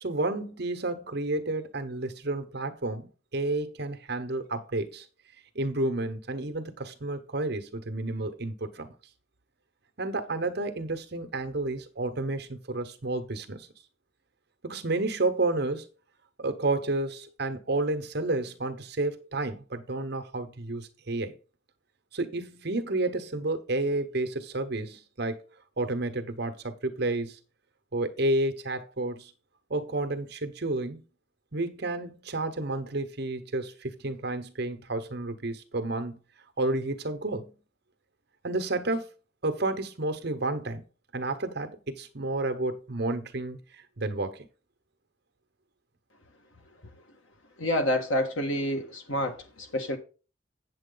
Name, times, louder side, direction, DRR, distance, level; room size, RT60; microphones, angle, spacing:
voice 1, 0.0-5.0 5.5-8.9 10.0-13.7 14.6-15.9 16.4-21.3 22.1-25.4 25.8-27.4 27.9-29.3 29.7-31.0 31.5-36.2 36.6-37.5 38.4-39.1 39.4-40.8 41.1-44.5, right 2 dB, 55° right, 1.1 m, -31 dB
voice 2, 47.6-50.0, left 1 dB, 90° left, 1.8 m, -28 dB
8.4 x 7.6 x 3.9 m
head